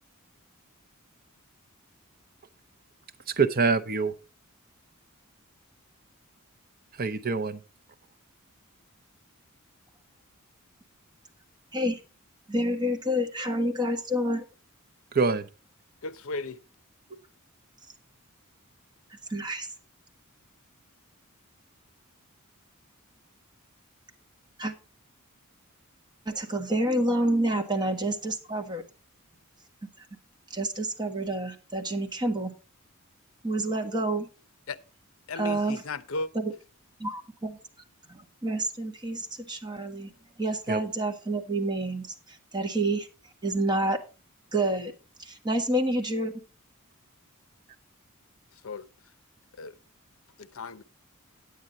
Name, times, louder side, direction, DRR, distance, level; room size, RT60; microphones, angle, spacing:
voice 1, 3.3-4.1 6.9-7.6 15.1-15.5 40.7-40.8, right 4 dB, 45° right, 0.7 m, -25 dB
voice 2, 12.5-14.4 19.3-19.7 24.6-24.7 26.2-28.8 30.5-32.5 33.4-34.3 35.4-35.8 36.3-36.5 37.0-37.6 38.1-40.1 40.4-43.1 43.4-44.0 44.5-44.9 45.2-46.3, right 1 dB, 20° right, 1.5 m, -28 dB
voice 3, 16.0-16.6 34.7-34.8 35.3-36.3 48.6-48.9 49.6-49.8 50.4-50.8, left 3 dB, 65° left, 0.7 m, -35 dB
9.5 x 9.2 x 4.0 m
head